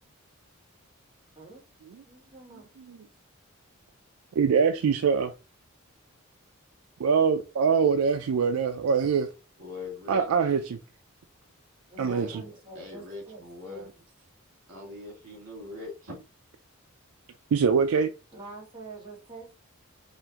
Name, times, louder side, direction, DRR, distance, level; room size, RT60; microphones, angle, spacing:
voice 1, 2.1-2.7 11.9-13.9 18.3-19.6, right 2 dB, 20° right, 1.8 m, -46 dB
voice 2, 4.4-5.3 7.0-9.3 10.1-10.8 12.0-12.4 17.5-18.1, right 6 dB, 80° right, 0.4 m, -23 dB
voice 3, 9.6-10.6 12.0-13.9 14.7-16.2, left 3 dB, 65° right, 1.9 m, -42 dB
5.6 x 2.5 x 2.9 m
head